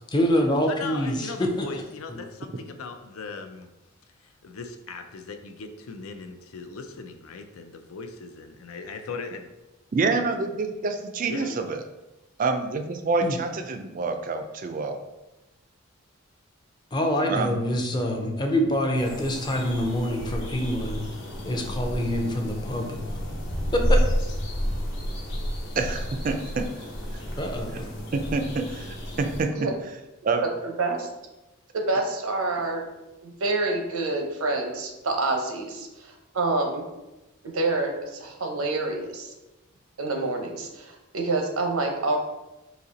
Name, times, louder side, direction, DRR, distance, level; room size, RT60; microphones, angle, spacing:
voice 1, 0.1-1.7 13.2-13.4 16.9-21.1 21.4-23.0 23.7-24.0 27.4-27.9, equal, 20° left, 2 dB, 0.5 m, -25 dB
voice 2, 0.7-3.7 4.4-9.5 11.3-11.6, left 4 dB, 80° left, 6 dB, 0.5 m, -38 dB
voice 3, 9.9-11.8 12.4-15.0 17.3-17.6 25.8-26.7 27.7-27.8 28.1-29.7 30.2-30.5, right 3 dB, 40° right, 7 dB, 0.3 m, -27 dB
sound 1, 19.0-29.4, equal, 60° left, 1.0 m, -30 dB
voice 4, 30.4-31.1 31.7-32.9 33.2-36.8 37.4-39.3 40.0-42.2, right 3 dB, 85° right, 3 dB, 0.8 m, -27 dB
4.1 x 2.8 x 3.9 m, 1.0 s
head